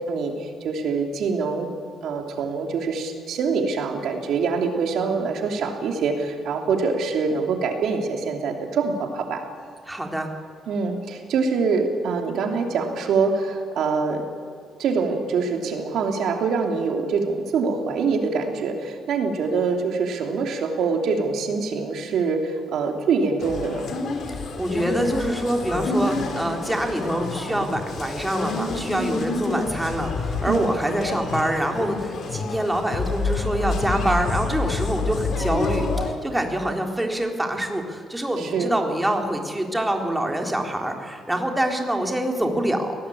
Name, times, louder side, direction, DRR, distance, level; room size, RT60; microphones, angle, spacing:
voice 1, 0.0-1.7 2.0-9.4 10.7-14.2 14.8-23.9 30.5-30.7 38.4-38.7, right 5 dB, 75° right, 4 dB, 3.2 m, -24 dB
voice 2, 9.9-10.3 24.3-43.0, right 1 dB, 10° right, 3 dB, 3.6 m, -25 dB
sound 1, 23.4-36.1, left 3 dB, 65° left, 3.6 m, -28 dB
21.5 x 18.5 x 8.7 m, 2.2 s
cardioid pair, 90°, 0 cm